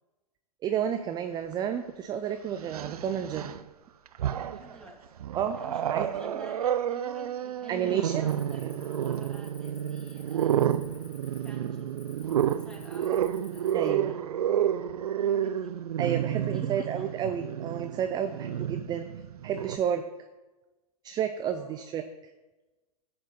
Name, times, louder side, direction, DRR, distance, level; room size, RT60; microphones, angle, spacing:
voice 1, 0.6-3.5 5.3-5.6 5.9-6.1 7.7-8.2 8.6-8.8 13.1-13.2 13.7-14.2 16.0-19.1 19.4-20.0 21.0-22.3, right 9 dB, 20° right, 8 dB, 0.5 m, -31 dB
Growling, 1.5-1.6 2.6-3.6 4.1-4.7 5.2-19.8, right 10 dB, 70° right, 0.6 m, -30 dB
voice 2, 4.3-5.0 5.5-10.7 11.3-13.2 13.5-14.2 15.1-15.8 16.5-17.1 21.5-21.8, right 1 dB, 5° left, -1 dB, 2.6 m, -50 dB
Cricket, 8.3-13.9, left 5 dB, 80° left, 2.0 m, -55 dB
13.0 x 7.8 x 4.0 m, 1.1 s
hypercardioid pair, 115°, 20 cm